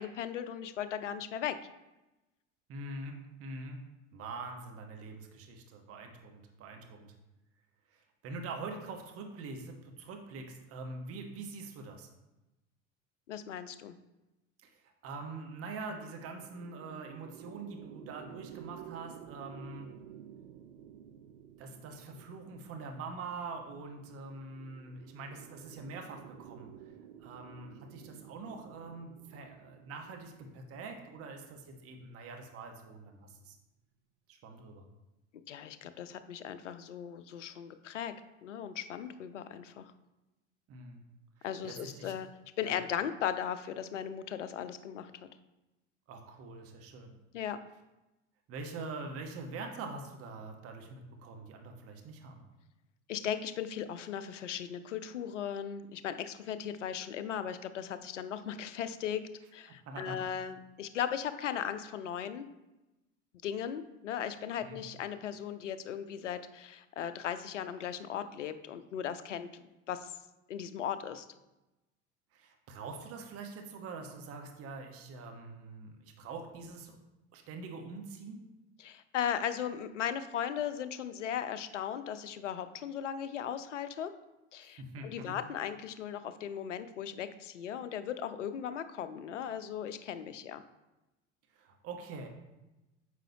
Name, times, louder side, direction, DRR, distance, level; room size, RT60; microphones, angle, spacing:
voice 1, 0.0-1.6 13.3-13.9 35.5-38.1 38.4-39.8 41.4-42.3 42.6-45.1 47.3-47.6 53.1-59.2 59.5-62.5 63.4-69.5 69.9-70.1 70.5-71.3 78.8-84.1 84.5-90.6, left 9 dB, 75° left, 11 dB, 0.7 m, -37 dB
voice 2, 2.7-3.1 3.4-3.8 4.1-7.1 7.9-12.1 15.0-19.9 21.6-26.7 27.2-33.6 34.3-34.8 40.7-41.0 41.6-42.2 42.6-42.7 46.1-47.1 48.5-52.4 59.7-60.3 64.6-64.8 72.3-77.0 77.3-78.4 84.6-85.4 91.5-92.3, right 3 dB, 40° right, 3 dB, 1.2 m, -44 dB
sound 1, 15.7-33.1, right 10 dB, 75° right, 0.6 m, -53 dB
8.9 x 6.5 x 2.8 m, 1.0 s
figure-of-eight pair, 75°, 37 cm